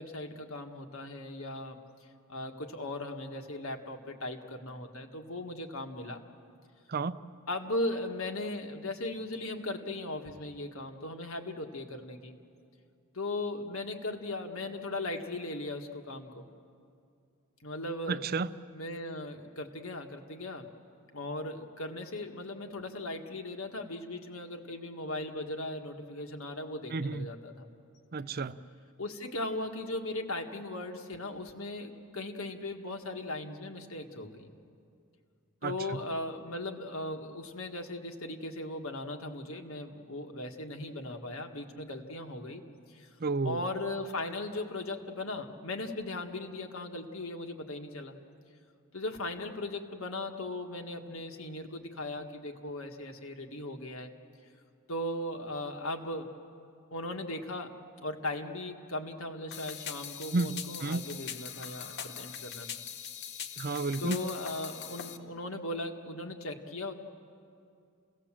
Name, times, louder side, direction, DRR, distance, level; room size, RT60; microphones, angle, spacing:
voice 1, 0.0-1.8 2.3-6.2 7.5-12.4 13.1-16.4 17.6-18.2 18.7-20.7 21.1-27.7 29.0-34.5 35.6-42.6 42.9-43.1 43.4-48.2 48.9-54.1 54.9-56.3 56.9-62.7 64.0-66.9, left 2 dB, 70° left, 4 dB, 1.7 m, -38 dB
voice 2, 18.1-18.5 26.9-27.3 28.1-28.6 35.6-36.0 43.2-43.6 60.3-61.0 63.6-64.2, right 3 dB, 45° right, 14 dB, 0.5 m, -32 dB
sound 1, 59.5-65.2, left 8 dB, 50° left, 0.9 m, -42 dB
28.5 x 17.5 x 7.5 m, 2.4 s
head